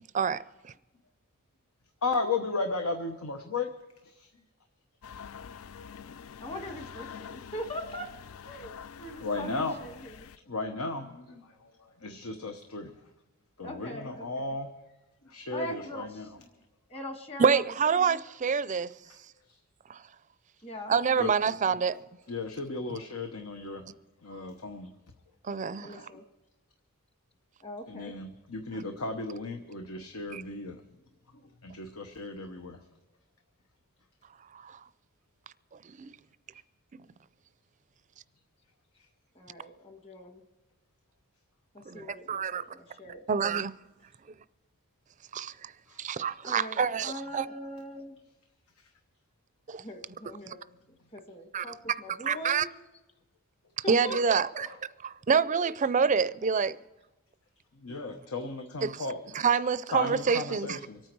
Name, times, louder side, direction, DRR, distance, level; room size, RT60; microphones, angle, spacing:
voice 1, 0.1-0.7 17.4-18.9 19.9-20.0 20.9-22.0 25.5-26.1 30.3-30.4 34.5-34.8 35.8-36.1 41.9-42.6 43.3-43.7 45.3-45.7 46.0-47.5 49.7-49.8 51.5-51.7 52.3-52.7 53.9-54.7 55.3-56.8 58.8-59.0 59.3-60.8, right 6 dB, 35° right, 0.4 m, -27 dB
voice 2, 2.0-3.7 4.0-4.3 9.2-10.0 10.5-12.9 13.6-14.7 15.2-16.3 19.5-19.6 21.2-21.3 22.3-23.8 24.2-24.9 25.8-26.2 27.9-30.8 31.4-32.8 45.9-46.0 57.7-59.2 59.9-61.0, left 3 dB, 85° left, 1.1 m, -35 dB
sound 1, 5.0-10.4, left 7 dB, 70° left, 0.4 m, -46 dB
voice 3, 6.4-8.1 8.4-8.7 9.0-10.3 13.6-14.5 15.5-16.3 16.9-17.7 18.0-18.2 20.6-21.3 21.7-21.8 25.8-26.2 27.6-28.1 39.3-40.4 41.7-43.2 46.4-48.2 49.8-50.6 51.1-52.7 53.8-54.6 55.3-55.5, left 1 dB, 30° left, 1.5 m, -41 dB
25.5 x 9.2 x 4.6 m
head